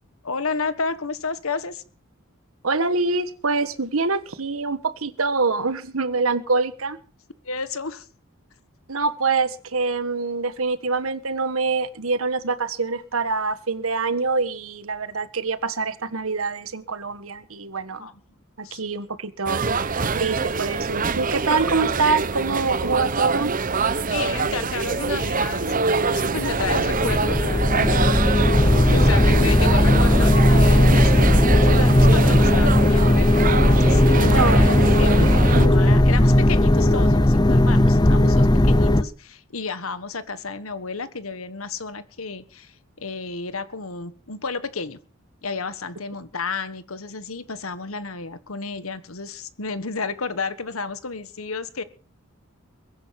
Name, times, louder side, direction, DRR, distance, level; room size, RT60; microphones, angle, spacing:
voice 1, 0.2-1.8 7.4-8.1 18.0-18.2 18.6-18.8 23.8-33.4 33.7-45.0 45.4-51.8, left 4 dB, 85° left, 13 dB, 1.5 m, -32 dB
voice 2, 2.6-7.0 8.9-18.1 18.6-23.5 34.3-34.6 35.5-35.7, right 4 dB, 85° right, 13 dB, 1.5 m, -25 dB
sound 1, 19.5-35.7, right 4 dB, 40° right, 0.9 m, -24 dB
sound 2, 26.2-39.0, left 1 dB, 20° left, 0.7 m, -17 dB
22.0 x 10.5 x 5.9 m, 0.41 s
head